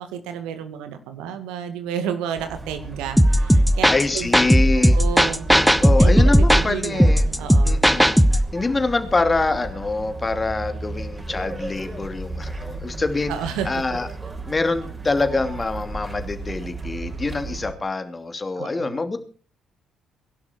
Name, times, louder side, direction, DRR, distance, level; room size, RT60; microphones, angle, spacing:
voice 1, 0.0-4.3 4.8-5.5 6.0-7.8 13.3-13.7 18.6-19.0, right 8 dB, 75° right, 9 dB, 2.0 m, -31 dB
sound 1, 2.4-17.7, right 2 dB, 25° right, 5.0 m, -35 dB
sound 2, 3.2-8.5, equal, ahead, 1.5 m, -16 dB
voice 2, 3.9-5.0 5.8-7.2 7.6-13.3 13.6-14.1 14.5-19.2, left 3 dB, 25° left, 8 dB, 2.8 m, -25 dB
22.5 x 11.5 x 4.5 m, 0.37 s
hypercardioid pair, 50°, 0 cm